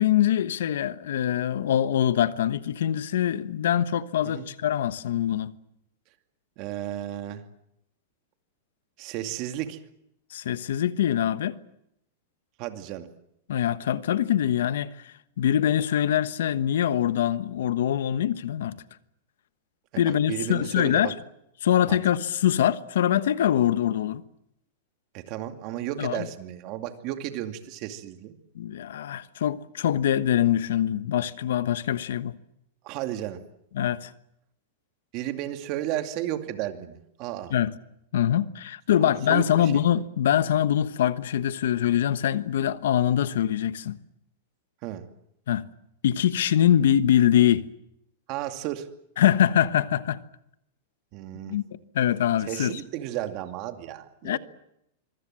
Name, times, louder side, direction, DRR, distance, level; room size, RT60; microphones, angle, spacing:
voice 1, 0.0-5.5 10.3-11.6 13.5-18.7 20.0-21.1 21.6-24.2 26.0-26.2 28.5-32.3 33.7-34.1 37.5-37.7 38.1-44.0 45.5-45.7 46.0-47.7 49.2-50.2 51.5-51.6 51.9-52.8 54.2-54.4, left 10 dB, 80° left, 1.2 m, -24 dB
voice 2, 6.6-7.4 9.0-9.8 12.6-13.1 19.9-21.1 21.9-22.0 25.1-28.3 32.8-33.4 35.1-37.5 39.0-39.8 44.8-45.1 48.3-48.9 51.1-51.6 52.5-54.4, right 12 dB, 40° right, 2.4 m, -33 dB
25.0 x 23.5 x 7.6 m
supercardioid pair, 155°, 0 cm